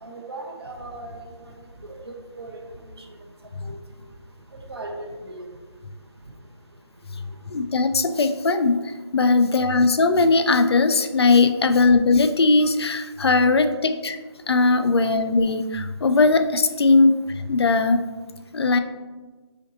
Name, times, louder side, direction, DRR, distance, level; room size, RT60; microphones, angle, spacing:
voice 1, 0.0-1.2 2.1-2.6 3.7-3.8 4.7-5.5, right 2 dB, 60° right, 1 dB, 0.7 m, -37 dB
voice 2, 7.5-8.8 9.1-14.2 14.5-17.1 17.5-18.0 18.5-18.8, left 3 dB, 65° left, 8 dB, 0.4 m, -19 dB
5.0 x 3.8 x 2.8 m, 1.3 s
figure-of-eight pair, 175°, 15 cm